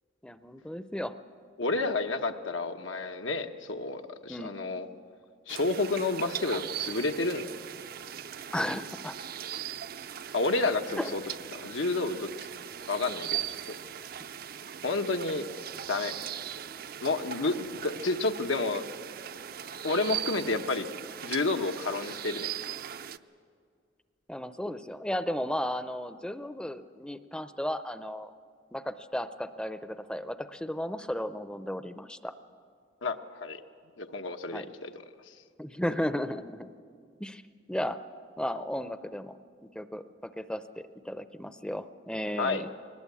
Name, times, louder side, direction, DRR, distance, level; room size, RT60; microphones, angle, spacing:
voice 1, 0.2-1.1 1.7-1.8 4.3-4.5 8.5-9.2 11.0-11.1 24.3-28.3 28.7-32.3 34.5-34.7 35.6-36.7 37.2-37.4 37.7-38.0 38.4-42.7, equal, 5° left, 12 dB, 0.5 m, -34 dB
voice 2, 1.6-4.9 5.5-7.4 10.3-11.2 11.5-12.3 12.9-13.7 14.8-15.5 15.9-16.1 17.0-18.8 19.8-20.9 21.2-22.5 33.0-33.6 34.0-34.9 42.4-42.7, left 3 dB, 90° left, 6 dB, 1.1 m, -30 dB
sound 1, 5.5-23.2, right 9 dB, 50° right, 0.5 m, -39 dB
21.0 x 19.0 x 8.4 m, 2.2 s
head